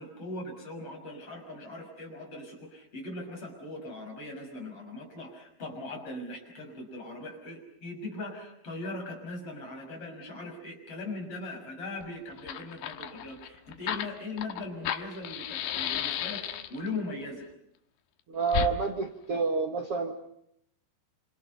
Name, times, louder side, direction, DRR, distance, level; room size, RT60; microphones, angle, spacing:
voice 1, 0.0-17.5, left 2 dB, 30° left, 2 dB, 6.9 m, -40 dB
Fire, 12.0-12.1 12.3-16.9 18.5-18.7, left 11 dB, 90° left, 3.6 m, -33 dB
voice 2, 18.3-20.1, right 5 dB, 70° right, 3 dB, 1.4 m, -29 dB
28.0 x 27.5 x 5.4 m, 0.74 s
omnidirectional pair, 5.3 m